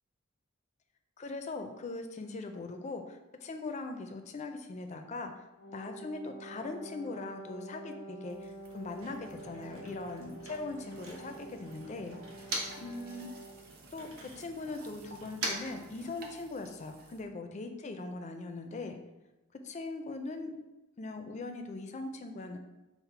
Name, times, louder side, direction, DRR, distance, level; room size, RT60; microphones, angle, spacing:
voice 1, 1.2-5.3 5.7-12.5 12.8-13.3 13.9-19.0 19.6-20.5 21.0-22.6, left 3 dB, 35° left, 6 dB, 0.4 m, -40 dB
Wind instrument woodwind instrument, 5.6-13.7, right 1 dB, 90° left, 0.8 m, -48 dB
sound 1, 8.3-17.2, right 2 dB, 45° right, 0.6 m, -56 dB
Motor vehicle (road), 8.5-13.0 13.3-16.6, right 2 dB, 90° right, 1.0 m, -43 dB
5.6 x 2.1 x 4.5 m, 1.1 s
head